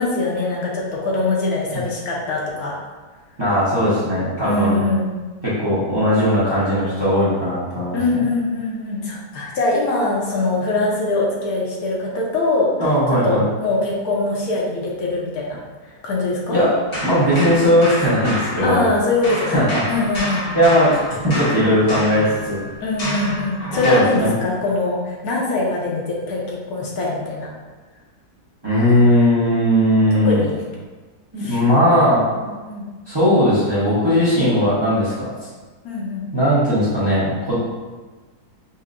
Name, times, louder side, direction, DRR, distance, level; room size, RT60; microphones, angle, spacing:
voice 1, 0.0-2.7 4.4-5.1 7.9-12.7 13.2-16.6 18.6-20.5 22.8-27.5 30.2-30.6 31.4-31.6 32.6-32.9 35.8-36.2, left 2 dB, 75° left, -3 dB, 1.2 m, -22 dB
voice 2, 3.4-4.8 5.4-8.2 12.8-13.4 16.5-16.7 17.0-18.8 19.5-19.6 20.5-21.0 21.2-22.6 23.8-24.3 28.6-30.4 31.3-32.5 33.1-35.3 36.3-37.6, equal, 25° right, -11 dB, 0.7 m, -18 dB
sound 1, 16.9-19.0 19.2-24.1, equal, 40° left, 1.1 m, -28 dB
5.4 x 2.1 x 2.5 m, 1.3 s
omnidirectional pair, 1.6 m